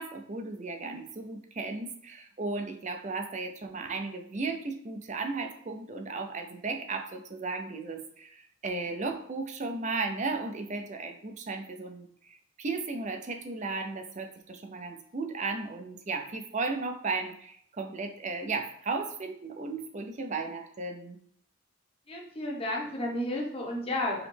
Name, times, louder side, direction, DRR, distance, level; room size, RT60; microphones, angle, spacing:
voice 1, 0.0-21.2, right 3 dB, 35° right, 5 dB, 0.5 m, -35 dB
voice 2, 22.1-24.3, left 1 dB, 30° left, -1 dB, 1.0 m, -32 dB
4.9 x 3.1 x 3.3 m, 0.65 s
head